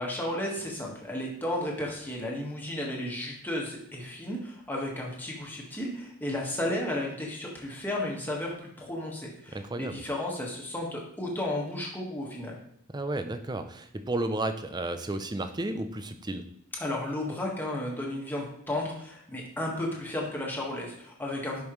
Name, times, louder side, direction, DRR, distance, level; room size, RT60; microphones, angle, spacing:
voice 1, 0.0-12.6 16.8-21.6, left 1 dB, 10° left, -2 dB, 1.6 m, -33 dB
voice 2, 9.5-10.0 12.9-16.4, right 2 dB, 20° right, 9 dB, 0.5 m, -32 dB
11.5 x 5.4 x 3.1 m, 0.71 s
head